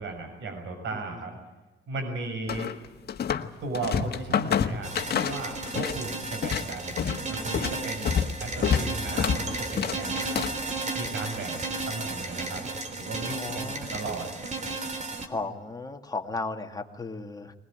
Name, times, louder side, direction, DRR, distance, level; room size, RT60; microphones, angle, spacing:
voice 1, 0.0-1.3 1.9-2.7 3.6-6.9 7.3-8.1 8.4-10.4 11.0-12.7 12.9-14.3, right 3 dB, 75° right, 5 dB, 6.5 m, -36 dB
voice 2, 0.9-1.3 13.3-14.2 15.2-17.5, left 3 dB, 20° left, 4 dB, 2.3 m, -36 dB
sound 1, 2.5-3.5 3.7-6.0 6.3-10.7, left 8 dB, 55° left, 1.6 m, -28 dB
sound 2, 4.8-15.3, right 3 dB, 35° right, 3.3 m, -34 dB
21.0 x 20.5 x 9.0 m, 1.1 s
cardioid pair, 105°, 20 cm